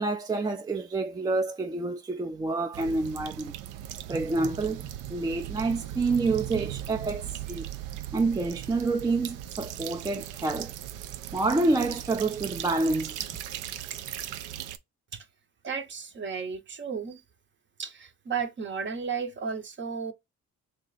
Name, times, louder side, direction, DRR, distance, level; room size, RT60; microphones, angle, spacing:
voice 1, 0.0-3.5 4.1-7.6 8.1-10.7 11.3-13.2, right 3 dB, 15° right, 0.3 m, -28 dB
sound 1, 2.7-14.8, right 12 dB, 90° right, 0.5 m, -38 dB
voice 2, 15.6-17.2 17.8-20.1, right 6 dB, 40° right, 0.7 m, -34 dB
3.3 x 2.8 x 3.9 m
cardioid pair, 90°, 30 cm